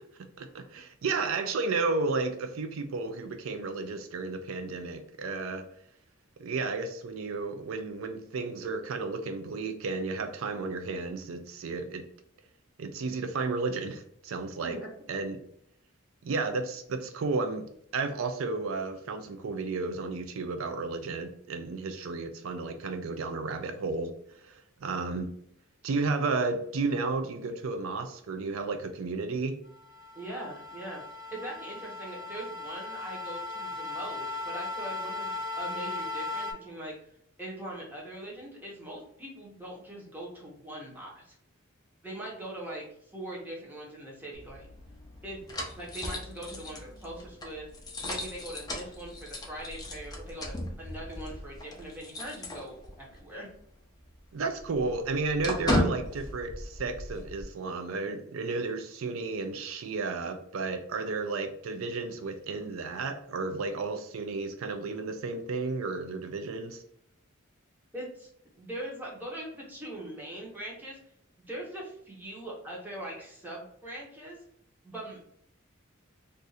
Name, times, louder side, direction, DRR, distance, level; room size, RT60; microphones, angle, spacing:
voice 1, 0.4-5.7 6.4-12.1 12.8-14.8 15.1-15.4 16.2-17.7 17.9-25.3 25.8-29.6 54.3-66.8, right 3 dB, 80° right, 6 dB, 0.4 m, -33 dB
sound 1, 29.7-36.5, left 3 dB, 45° right, 1.2 m, -37 dB
voice 2, 30.1-31.0 31.3-36.9 37.4-41.3 42.0-42.8 43.1-44.7 45.2-47.7 48.0-53.5 67.9-68.3 68.6-71.0 71.4-74.4 74.8-75.2, right 1 dB, 10° right, -4 dB, 1.0 m, -41 dB
sound 2, 44.3-53.2 53.5-53.6 54.0-57.4, left 1 dB, 20° left, 0.6 m, -36 dB
2.6 x 2.5 x 4.0 m, 0.69 s
head